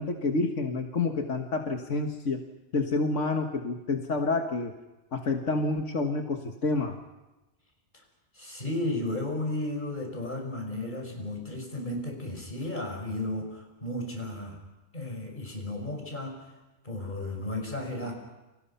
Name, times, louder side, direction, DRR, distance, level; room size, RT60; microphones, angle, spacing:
voice 1, 0.0-2.4 2.7-4.7 5.1-7.0, left 3 dB, 90° left, 4 dB, 1.9 m, -28 dB
voice 2, 8.3-14.6 14.9-16.3 16.8-18.1, left 1 dB, 40° left, 2 dB, 6.1 m, -34 dB
30.0 x 25.5 x 5.7 m, 1.0 s
omnidirectional pair, 1.2 m